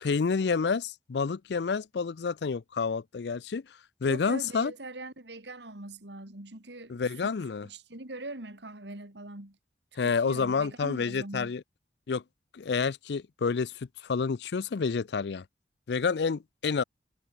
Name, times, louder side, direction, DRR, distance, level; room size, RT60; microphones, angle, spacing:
voice 1, 0.0-3.6 4.0-4.7 6.9-7.7 10.0-11.6 12.1-12.2 12.5-13.7 14.0-15.4 15.9-16.8, left 5 dB, 75° left, 0.5 m, -29 dB
voice 2, 4.1-7.3 7.6-9.6 10.0-11.6, right 2 dB, 80° right, 3.2 m, -42 dB
head